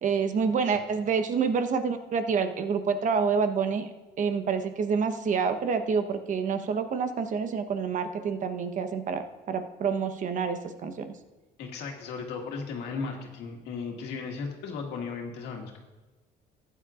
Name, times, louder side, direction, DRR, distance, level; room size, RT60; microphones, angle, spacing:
voice 1, 0.0-3.9 4.2-11.1, right 5 dB, 50° right, 8 dB, 1.0 m, -28 dB
voice 2, 11.6-15.8, left 5 dB, 80° left, 1 dB, 1.9 m, -36 dB
15.0 x 9.7 x 2.5 m, 1.2 s
cardioid pair, 110°, 17 cm